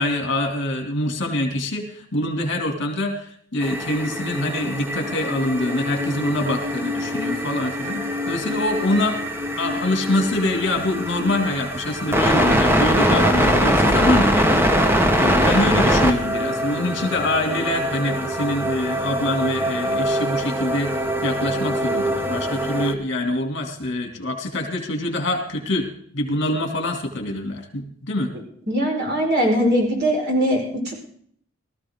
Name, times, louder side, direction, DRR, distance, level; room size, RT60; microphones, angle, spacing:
voice 1, 0.0-9.2 9.6-14.5 15.2-28.3, left 1 dB, 60° left, 4 dB, 2.5 m, -25 dB
sound 1, 3.6-22.9, equal, 10° right, 1.1 m, -23 dB
voice 2, 28.7-30.9, equal, 55° right, 0 dB, 4.9 m, -21 dB
18.0 x 14.0 x 3.6 m, 0.63 s
head